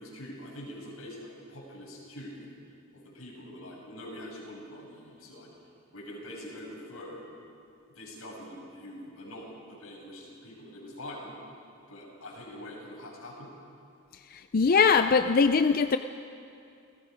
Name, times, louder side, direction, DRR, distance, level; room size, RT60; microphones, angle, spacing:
voice 1, 0.0-2.6 2.9-5.5 5.9-7.3 7.9-11.3 11.9-13.5, left 1 dB, 90° left, -2 dB, 6.3 m, -44 dB
voice 2, 14.5-16.0, left 5 dB, 45° left, 9 dB, 0.5 m, -21 dB
29.0 x 18.0 x 5.2 m, 2.5 s
head